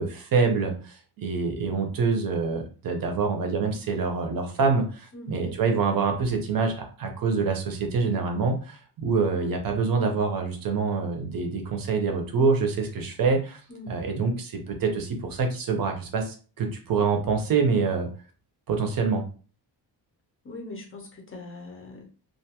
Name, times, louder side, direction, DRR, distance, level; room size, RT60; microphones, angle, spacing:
voice 1, 0.0-13.6 13.9-18.1 18.7-19.2, right 4 dB, 55° right, 3 dB, 0.6 m, -26 dB
voice 2, 5.1-5.4 13.7-14.0 20.4-22.1, left 2 dB, 30° left, 0 dB, 0.5 m, -41 dB
2.4 x 2.2 x 2.8 m, 0.38 s
wide cardioid pair, 180°, 42 cm